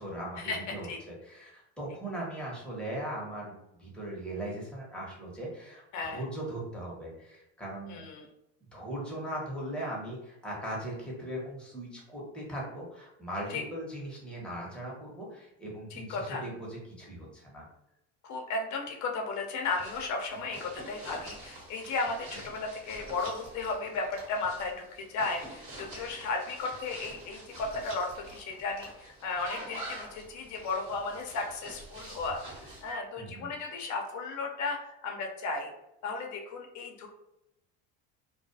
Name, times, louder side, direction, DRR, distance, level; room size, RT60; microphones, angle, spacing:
voice 1, 0.0-8.0 8.7-17.6 33.2-33.5, right 1 dB, 5° left, -5 dB, 1.0 m, -39 dB
voice 2, 7.9-8.3 13.5-13.6 15.9-16.4 18.2-35.7 36.0-37.1, left 3 dB, 50° left, 2 dB, 0.7 m, -35 dB
sound 1, 19.6-32.9, right 1 dB, 35° right, 1.2 m, -47 dB
2.3 x 2.2 x 2.7 m, 0.84 s
supercardioid pair, 90°, 37 cm